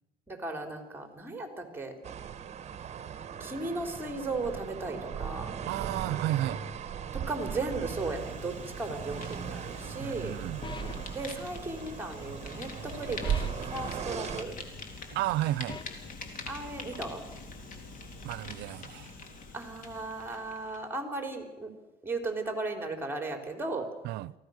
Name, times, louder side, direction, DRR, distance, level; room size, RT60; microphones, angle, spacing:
voice 1, 0.3-1.9 3.4-5.5 7.1-10.4 11.1-14.6 16.5-17.2 19.5-21.7 22.0-23.9, right 2 dB, 10° right, 4.0 m, -36 dB
sound 1, 2.0-14.4, right 8 dB, 40° right, 1.3 m, -38 dB
voice 2, 5.6-6.6 10.0-10.6 15.1-15.8 18.2-19.1 24.0-24.3, right 15 dB, 85° right, 0.6 m, -32 dB
Fire, 7.5-20.8, left 3 dB, 55° left, 3.6 m, -45 dB
sound 2, 10.6-11.3 13.2-13.8 15.7-16.1, left 6 dB, 30° left, 0.7 m, -42 dB
24.5 x 16.0 x 6.6 m
cardioid pair, 110°, 17 cm